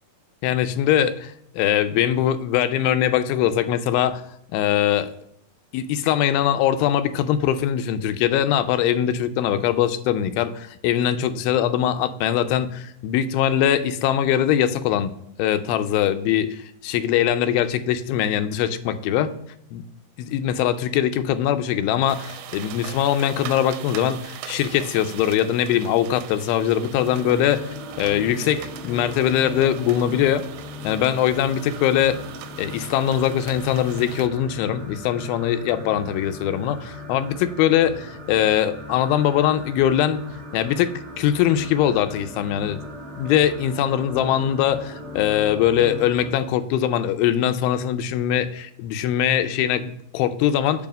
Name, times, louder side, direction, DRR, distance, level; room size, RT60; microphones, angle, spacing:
voice 1, 0.4-4.3 4.5-5.1 5.7-15.1 15.4-19.3 19.7-19.8 20.2-27.7 28.0-30.4 30.8-32.2 32.6-40.2 40.5-42.8 43.2-50.9, left 10 dB, 90° left, 10 dB, 2.4 m, -22 dB
sound 1, 22.1-34.3, right 11 dB, 85° right, 2.3 m, -41 dB
sound 2, 27.0-46.3, left 2 dB, 55° right, 1.5 m, -38 dB
7.0 x 2.8 x 5.1 m, 0.73 s
omnidirectional pair, 4.2 m